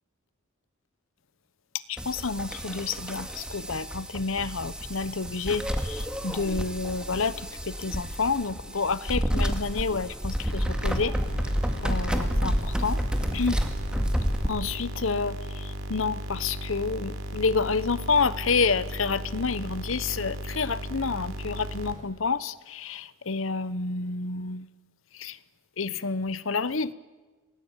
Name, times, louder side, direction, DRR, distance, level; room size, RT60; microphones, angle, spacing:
voice 1, 1.9-11.2 11.8-13.0 13.3-13.6 14.5-24.7 25.1-25.4 25.8-26.9, left 4 dB, 70° left, 17 dB, 1.0 m, -29 dB
sound 1, 2.0-14.5, equal, 5° right, 2.1 m, -30 dB
sound 2, 10.5-21.9, equal, 90° right, 3.5 m, -36 dB
27.5 x 21.0 x 9.0 m, 1.3 s
head